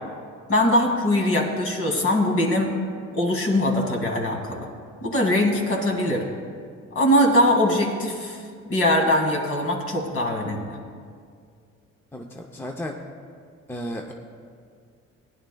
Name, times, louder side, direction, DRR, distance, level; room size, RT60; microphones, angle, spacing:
voice 1, 0.5-2.7 3.1-4.7 5.0-6.2 6.9-8.4 8.7-10.8, left 1 dB, 50° left, 1 dB, 2.1 m, -22 dB
voice 2, 12.1-13.0 13.7-14.1, equal, 5° left, 2 dB, 0.6 m, -33 dB
16.5 x 10.5 x 2.3 m, 2.1 s
cardioid pair, 90°, 30 cm